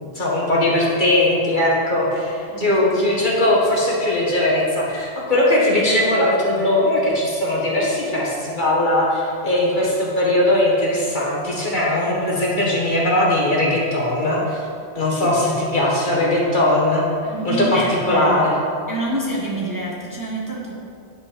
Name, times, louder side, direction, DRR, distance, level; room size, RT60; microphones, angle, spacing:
voice 1, 0.1-14.6 14.9-17.0 17.4-17.8 18.1-18.5, left 1 dB, 45° left, -4 dB, 1.7 m, -19 dB
voice 2, 2.5-3.2 15.2-15.4 17.2-18.5 18.9-20.8, right 1 dB, 20° right, -4 dB, 1.0 m, -27 dB
9.6 x 5.2 x 5.1 m, 2.3 s
omnidirectional pair, 1.1 m